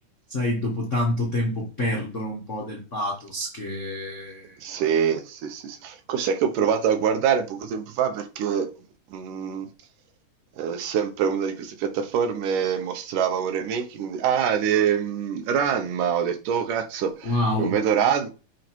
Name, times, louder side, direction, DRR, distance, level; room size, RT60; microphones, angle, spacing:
voice 1, 0.3-4.6 17.2-17.7, left 1 dB, 60° left, 0.7 m, -27 dB
voice 2, 4.6-8.7 9.1-9.7 10.6-18.3, right 8 dB, 90° right, 2.7 m, -25 dB
7.8 x 3.2 x 4.5 m
omnidirectional pair, 3.7 m